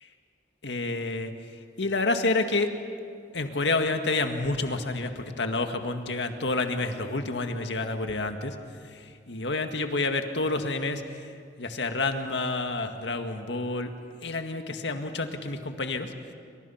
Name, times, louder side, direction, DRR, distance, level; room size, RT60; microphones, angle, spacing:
voice 1, 0.6-1.3 1.8-2.7 3.3-8.6 8.9-11.0 11.6-13.9 14.2-16.1, left 3 dB, 80° left, 6 dB, 1.9 m, -29 dB
28.5 x 25.0 x 5.8 m, 2.3 s
head